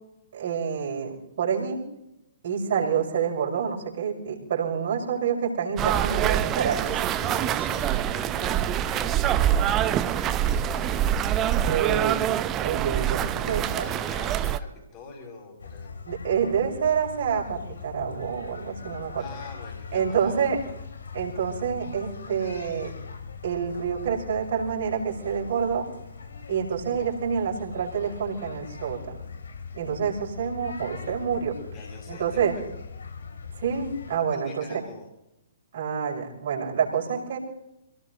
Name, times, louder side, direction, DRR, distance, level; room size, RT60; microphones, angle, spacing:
voice 1, 0.3-1.8 2.4-6.8 11.6-13.8 16.0-19.3 19.9-20.6 21.1-22.9 23.4-25.9 26.5-29.2 29.7-31.6 32.1-32.6 33.6-34.8 35.7-37.4, right 7 dB, 50° right, -2 dB, 5.9 m, -27 dB
sound 1, 5.8-14.6, right 11 dB, 25° right, 0.7 m, -25 dB
voice 2, 6.8-11.0 13.3-15.9 19.2-20.5 31.7-32.4 34.2-35.0, left 4 dB, 30° left, -1 dB, 5.9 m, -43 dB
sound 2, 15.6-34.2, left 5 dB, 65° left, 2.6 m, -41 dB
29.0 x 18.0 x 2.7 m, 0.89 s
figure-of-eight pair, 120°, 0 cm